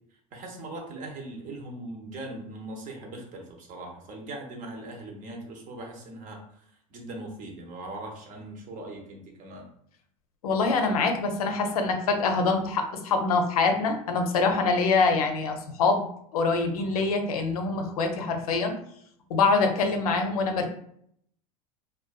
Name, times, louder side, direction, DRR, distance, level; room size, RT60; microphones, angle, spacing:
voice 1, 0.3-9.7 19.8-20.0, right 2 dB, 45° right, 2 dB, 0.7 m, -40 dB
voice 2, 10.4-16.0 16.3-18.7 19.3-20.7, left 4 dB, 85° left, 5 dB, 0.5 m, -24 dB
2.5 x 2.2 x 2.3 m, 0.67 s
hypercardioid pair, 95°, 18 cm